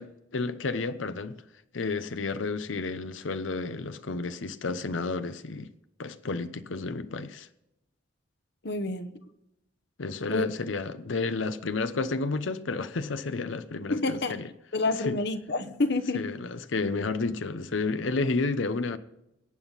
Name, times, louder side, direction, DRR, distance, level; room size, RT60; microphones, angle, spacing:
voice 1, 0.0-1.4 1.7-5.7 6.0-7.5 10.0-14.5 15.1-15.2 16.1-19.0, left 3 dB, 85° left, 0.8 m, -31 dB
voice 2, 8.6-9.2 10.3-10.5 13.9-14.4 14.7-16.3, left 2 dB, 60° left, 1.1 m, -28 dB
22.5 x 9.0 x 4.1 m
head